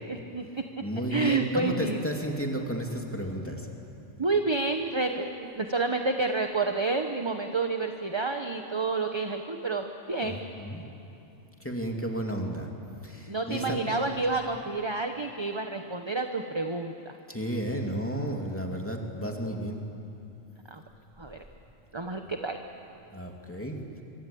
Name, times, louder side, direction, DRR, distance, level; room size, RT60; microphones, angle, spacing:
voice 1, 0.1-0.4 1.1-2.0 4.2-10.4 13.3-17.1 20.7-20.8 21.2-21.4 21.9-22.6, right 3 dB, 25° right, 5 dB, 1.0 m, -29 dB
voice 2, 0.8-3.7 4.0-4.2 10.2-10.8 11.6-12.7 13.0-13.8 17.3-19.8 23.1-23.8, right 1 dB, 10° left, 1 dB, 2.8 m, -32 dB
26.0 x 24.0 x 8.6 m, 2.8 s
omnidirectional pair, 1.3 m